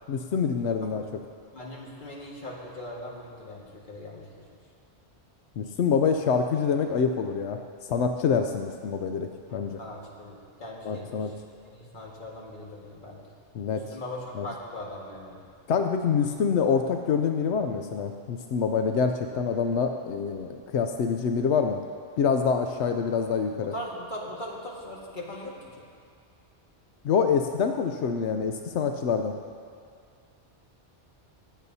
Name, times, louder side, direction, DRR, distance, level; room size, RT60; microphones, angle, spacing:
voice 1, 0.1-1.0 5.6-7.6 7.9-9.8 10.8-11.3 13.5-14.0 14.3-14.5 15.7-21.8 22.2-23.7 27.0-29.3, left 6 dB, 90° left, 5 dB, 0.9 m, -26 dB
voice 2, 1.5-4.2 9.5-11.3 11.7-13.2 13.7-15.4 23.6-25.7, left 1 dB, 45° left, -3 dB, 1.9 m, -40 dB
24.5 x 8.3 x 2.8 m, 2.2 s
omnidirectional pair, 1.1 m